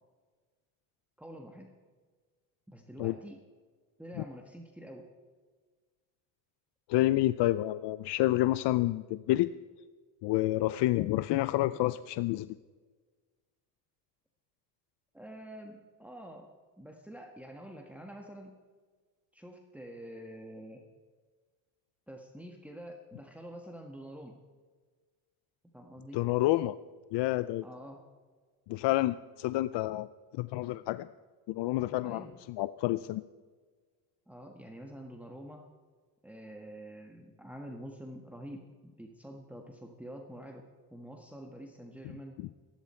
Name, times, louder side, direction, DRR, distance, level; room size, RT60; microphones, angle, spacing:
voice 1, 1.2-1.7 2.7-3.4 4.0-5.1 15.1-16.5 16.8-18.6 19.3-20.8 22.1-24.4 25.7-26.2 27.6-28.0 32.0-32.3 34.3-35.7 36.2-42.4, equal, 5° right, 2 dB, 1.5 m, -47 dB
voice 2, 6.9-9.5 10.2-12.6 26.1-26.8 27.1-27.6 28.7-30.1 30.3-31.1 31.5-33.2, left 16 dB, 65° left, 15 dB, 0.6 m, -29 dB
27.5 x 11.5 x 4.4 m, 1.5 s
cardioid pair, 100°, 45 cm